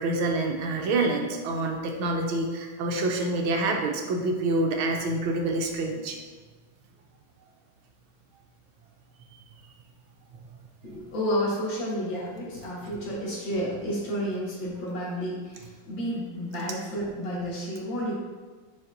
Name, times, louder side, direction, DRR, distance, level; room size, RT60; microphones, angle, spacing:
voice 1, 0.0-6.2, right 2 dB, 85° right, 2 dB, 1.6 m, -27 dB
voice 2, 10.8-18.2, equal, 70° left, -5 dB, 2.2 m, -31 dB
7.1 x 5.1 x 2.6 m, 1.4 s
omnidirectional pair, 2.2 m